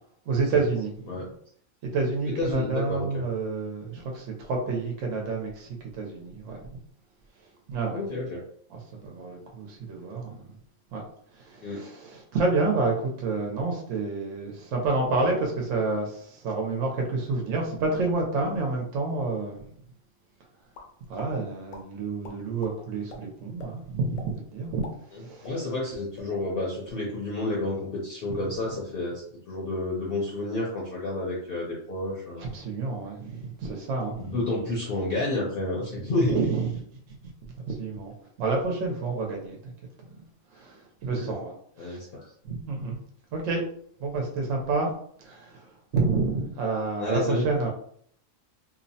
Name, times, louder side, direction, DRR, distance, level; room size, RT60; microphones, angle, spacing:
voice 1, 0.3-1.3 1.8-6.8 7.7-8.0 8.7-10.5 10.9-11.0 11.3-19.6 21.1-24.8 25.1-25.6 28.3-28.4 32.4-34.4 36.3-36.7 37.1-37.2 37.5-39.7 40.5-42.0 42.4-43.0 43.3-43.6 44.0-44.9 45.2-47.7, right 3 dB, 75° right, 0 dB, 0.9 m, -29 dB
voice 2, 2.3-3.2 7.9-8.4 11.6-11.8 25.4-32.5 34.2-36.4 41.1-41.3 41.8-42.2 47.0-47.4, left 2 dB, 55° left, -3 dB, 0.7 m, -30 dB
sound 1, 20.7-21.3 21.7-21.8 22.2-22.7 23.1-23.2 23.6-23.7 24.2-24.3 24.7-25.9 26.1-26.3 26.7-27.0, left 2 dB, 80° left, 1.0 m, -44 dB
2.8 x 2.0 x 2.6 m, 0.63 s
omnidirectional pair, 1.4 m